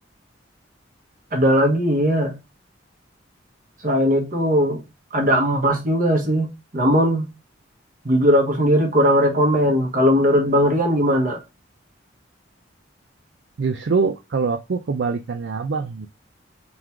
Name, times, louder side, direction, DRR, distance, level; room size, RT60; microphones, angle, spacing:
voice 1, 1.3-2.3 3.8-4.8 5.1-6.5 6.7-7.3 8.0-11.4, equal, 45° right, 1.3 m, -18 dB
voice 2, 13.6-16.1, right 4 dB, 65° right, 0.4 m, -24 dB
3.9 x 3.1 x 3.5 m
head